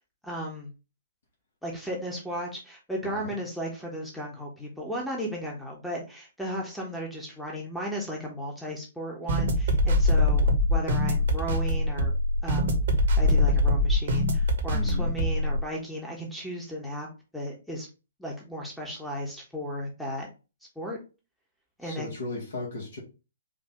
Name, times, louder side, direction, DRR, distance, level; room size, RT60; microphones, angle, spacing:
voice 1, 0.2-0.7 1.6-12.1 12.4-12.8 13.1-17.1 17.3-17.9 18.2-20.3 20.8-21.0 21.8-22.1, equal, ahead, -2 dB, 1.2 m, -35 dB
sound 1, 9.3-15.6, left 1 dB, 55° right, 1.2 m, -23 dB
voice 2, 14.7-15.2 21.8-23.0, left 3 dB, 60° left, -4 dB, 1.9 m, -35 dB
5.0 x 2.6 x 3.7 m, 0.31 s
figure-of-eight pair, 125°, 0 cm